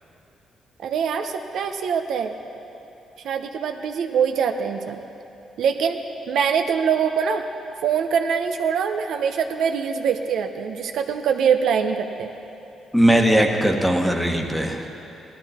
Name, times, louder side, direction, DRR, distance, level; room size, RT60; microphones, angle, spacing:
voice 1, 0.8-2.3 3.2-5.0 5.6-6.0 6.3-7.4 7.8-12.3, right 7 dB, 75° right, 5 dB, 0.8 m, -23 dB
voice 2, 12.9-14.9, right 1 dB, 5° left, 3 dB, 1.3 m, -19 dB
17.5 x 13.0 x 4.3 m, 2.9 s
cardioid pair, 90°, 0 cm